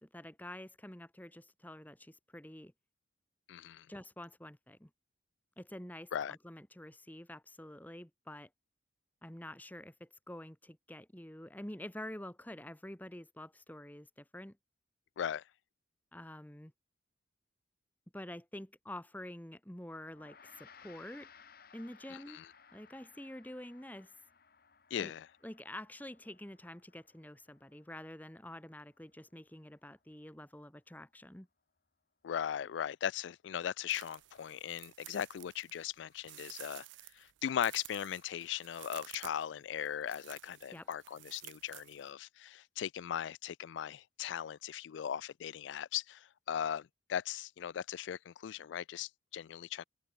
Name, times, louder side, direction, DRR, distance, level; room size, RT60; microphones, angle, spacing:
voice 1, 0.0-2.7 3.9-4.9 5.6-8.5 9.2-14.6 16.1-16.7 18.1-21.3 21.7-22.4 22.7-24.1 25.0-25.1 25.4-31.5 40.7-40.9, left 1 dB, 10° left, 1.3 m, -48 dB
voice 2, 3.5-3.9 6.1-6.4 15.2-15.4 22.1-22.5 24.9-25.3 32.2-36.9 37.1-49.8, left 9 dB, 75° left, 0.3 m, -38 dB
Gong, 20.1-29.6, left 6 dB, 50° left, 1.2 m, -61 dB
sound 1, 33.9-42.1, right 17 dB, 75° right, 0.4 m, -53 dB
open air
head